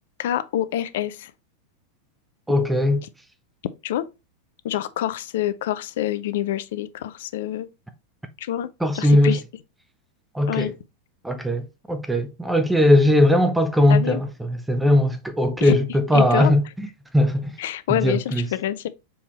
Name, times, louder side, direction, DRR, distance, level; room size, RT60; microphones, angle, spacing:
voice 1, 0.2-1.3 3.8-4.1 4.6-7.7 8.4-8.7 8.9-9.4 10.5-10.7 13.9-14.2 15.6-15.8 16.1-16.5 17.6-18.9, left 12 dB, 55° left, 0.4 m, -26 dB
voice 2, 2.5-3.0 8.8-9.4 10.3-10.7 11.2-16.6 17.1-17.5 17.9-18.4, left 1 dB, 5° right, 0.5 m, -19 dB
4.5 x 3.5 x 3.0 m
figure-of-eight pair, 90°, 0 cm